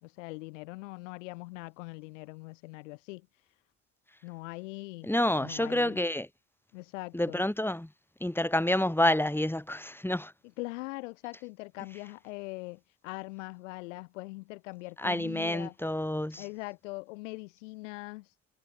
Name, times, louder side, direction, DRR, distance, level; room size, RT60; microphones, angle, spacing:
voice 1, 0.0-3.3 4.2-5.1 5.4-6.0 6.7-7.4 10.6-15.7 16.4-18.3, left 24 dB, 90° left, 3.5 m, -42 dB
voice 2, 5.0-6.3 7.1-7.9 8.2-10.3 15.0-16.4, left 1 dB, 5° left, 4.3 m, -28 dB
hypercardioid pair, 50°, 36 cm